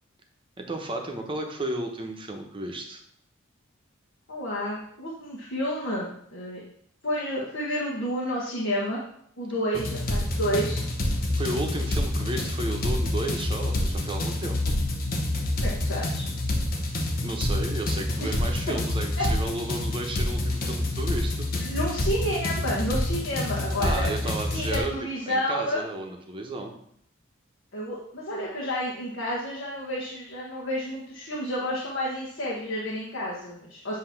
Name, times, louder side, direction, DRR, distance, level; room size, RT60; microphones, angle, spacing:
voice 1, 0.6-3.0 11.3-14.7 17.2-21.5 23.8-24.9 25.3-26.8, right 2 dB, 25° right, 2 dB, 0.9 m, -33 dB
voice 2, 4.3-6.6 7.0-9.0 9.4-10.8 15.6-16.2 18.2-18.3 19.2-19.3 21.6-24.1 24.5-25.8 27.7-34.0, equal, 60° left, -5 dB, 1.3 m, -30 dB
sound 1, 9.7-24.8, left 1 dB, 45° left, 0.9 m, -27 dB
7.8 x 2.9 x 5.8 m, 0.68 s
head